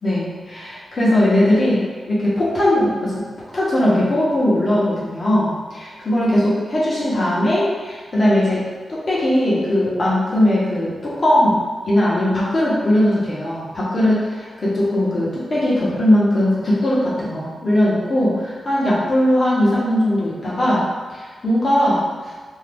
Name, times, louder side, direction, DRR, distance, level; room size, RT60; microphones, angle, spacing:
voice 1, 0.0-1.8 2.1-3.1 3.5-8.6 8.9-11.6 11.8-20.8 21.1-22.3, left 1 dB, 40° left, -8 dB, 1.0 m, -19 dB
2.7 x 2.4 x 3.4 m, 1.5 s
wide cardioid pair, 120°, 0 cm